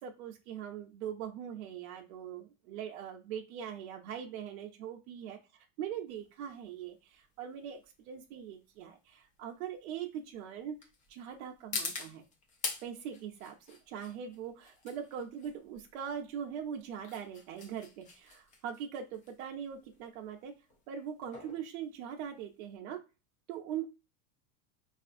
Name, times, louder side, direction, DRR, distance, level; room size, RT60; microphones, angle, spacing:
voice 1, 0.0-10.7 11.1-12.2 12.8-20.5 20.9-23.0 23.5-23.9, right 8 dB, 65° right, 2 dB, 0.6 m, -41 dB
sound 1, 6.1-22.8, left 4 dB, 20° left, 0.4 m, -45 dB
4.1 x 2.4 x 2.4 m, 0.29 s
supercardioid pair, 125°, 44 cm